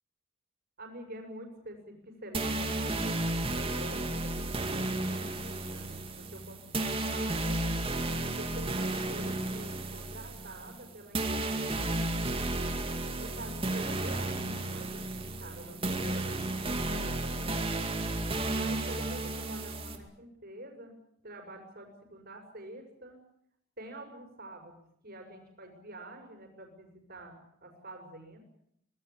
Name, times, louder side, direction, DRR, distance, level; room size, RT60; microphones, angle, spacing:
voice 1, 0.8-8.0 8.2-12.2 13.1-17.6 18.5-20.9 21.2-23.2 23.8-28.4, right 1 dB, 45° right, 2 dB, 5.9 m, -47 dB
sound 1, 2.3-20.0, right 2 dB, 25° right, 2.4 m, -33 dB
24.5 x 19.0 x 8.7 m, 0.72 s
head